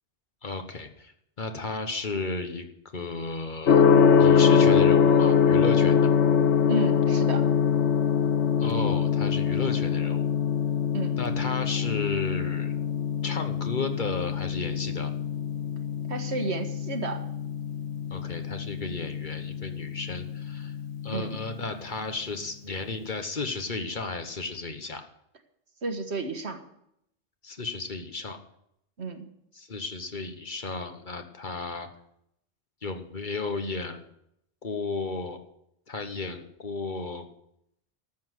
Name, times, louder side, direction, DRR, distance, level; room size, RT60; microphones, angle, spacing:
voice 1, 0.4-1.1 1.4-2.6 2.9-3.8 4.2-6.1 8.6-10.3 11.2-12.7 13.2-15.1 18.1-20.7 21.0-25.0 27.4-28.4 29.5-31.9 32.8-34.0 34.6-35.4 35.9-37.2, left 3 dB, 45° left, 6 dB, 1.3 m, -33 dB
Gong, 3.7-21.5, left 7 dB, 80° left, 1.1 m, -24 dB
voice 2, 6.7-7.4 10.9-11.2 16.1-17.2 21.1-21.4 25.8-26.6 29.0-29.3, right 3 dB, 70° right, 6 dB, 1.7 m, -31 dB
13.0 x 7.1 x 7.9 m, 0.76 s
omnidirectional pair, 1.1 m